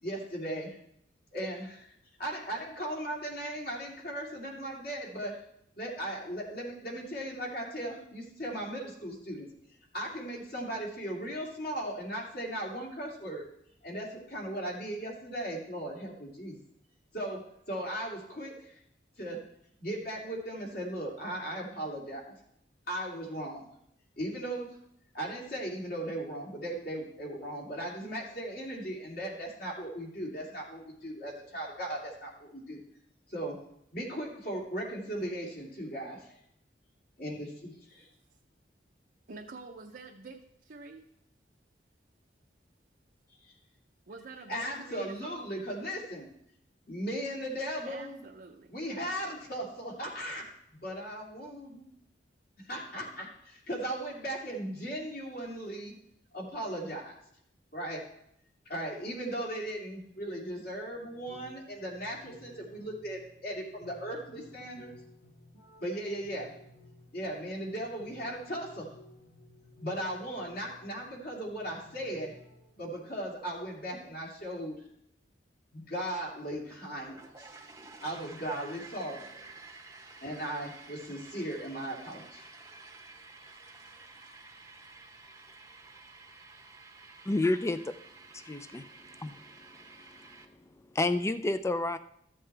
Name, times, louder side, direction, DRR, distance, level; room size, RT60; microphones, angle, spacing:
voice 1, 0.0-0.8 1.3-1.9 2.2-5.4 5.8-9.5 9.9-13.4 13.8-16.6 17.1-17.4 17.7-18.8 19.2-19.4 19.8-22.3 22.9-23.7 24.2-24.7 25.1-32.8 33.3-33.6 33.9-36.4 37.2-38.1 43.4-43.5 44.5-46.3 46.9-48.2 48.7-50.4 50.8-51.8 52.6-55.9 56.3-57.1 57.7-58.0 58.7-64.9 65.8-66.5 67.1-68.9 69.8-72.3 72.8-74.8 75.7-77.7 78.0-79.3 80.2-82.5, right 1 dB, 55° left, -3 dB, 2.7 m, -37 dB
voice 2, 39.3-41.1 44.1-45.6 47.9-48.8, right 3 dB, 55° right, 0 dB, 0.6 m, -47 dB
sound 1, 60.9-73.5 75.8-79.6, left 1 dB, 85° left, 2.0 m, -56 dB
sound 2, 76.6-90.4, right 3 dB, 15° right, 0.8 m, -51 dB
voice 3, 87.3-87.9 88.4-88.9 89.2-89.4 90.9-92.0, left 2 dB, 15° left, 11 dB, 0.4 m, -29 dB
13.5 x 7.6 x 3.3 m, 0.74 s
head